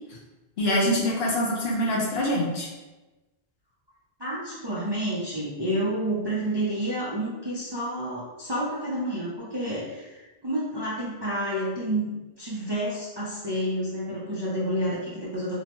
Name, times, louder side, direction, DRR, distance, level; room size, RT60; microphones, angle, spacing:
voice 1, 0.6-2.7, equal, 75° left, -3 dB, 0.9 m, -24 dB
voice 2, 4.2-15.6, right 1 dB, 35° right, -8 dB, 0.4 m, -29 dB
2.9 x 2.1 x 2.9 m, 1.1 s
omnidirectional pair, 1.1 m